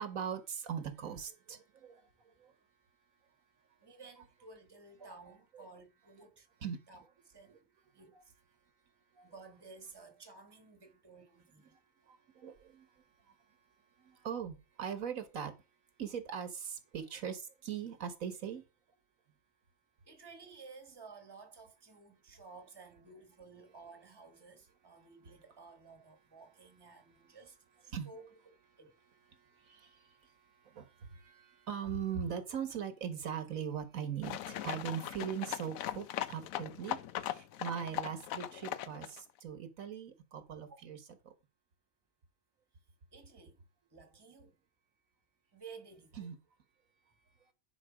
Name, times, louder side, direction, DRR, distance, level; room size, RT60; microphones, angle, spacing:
voice 1, 0.0-2.5 5.0-5.1 6.6-6.8 9.2-9.3 12.1-12.9 14.0-15.5 16.0-18.6 27.9-28.1 29.3-30.3 30.6-37.0 37.3-41.0 41.2-41.3 46.2-46.3, right 8 dB, 85° right, 1.6 m, -40 dB
voice 2, 3.8-6.5 6.9-7.7 7.9-8.3 9.2-11.7 20.0-28.9 40.6-40.8 43.1-43.6 43.9-44.6 45.5-46.3, right 4 dB, 20° right, 1.2 m, -54 dB
sound 1, 34.2-39.2, left 11 dB, 85° left, 1.1 m, -39 dB
10.0 x 4.6 x 5.0 m
omnidirectional pair, 1.4 m